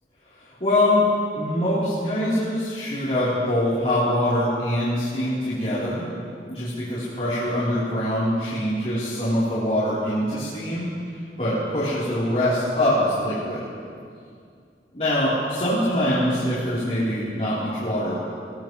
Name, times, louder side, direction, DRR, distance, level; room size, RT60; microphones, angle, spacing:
voice 1, 0.3-1.0 1.4-6.1 6.4-13.7 14.9-18.1, left 1 dB, 35° left, -12 dB, 3.7 m, -24 dB
20.0 x 19.0 x 3.2 m, 2.3 s
head